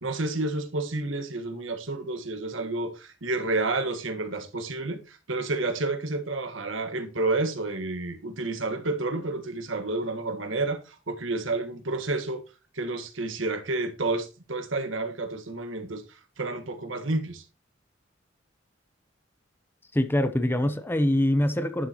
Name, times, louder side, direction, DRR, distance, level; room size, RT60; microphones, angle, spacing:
voice 1, 0.0-12.4 12.7-17.4, right 2 dB, 80° right, 1.4 m, -30 dB
voice 2, 19.9-21.9, left 1 dB, 10° left, 0.6 m, -24 dB
11.0 x 6.8 x 2.9 m
head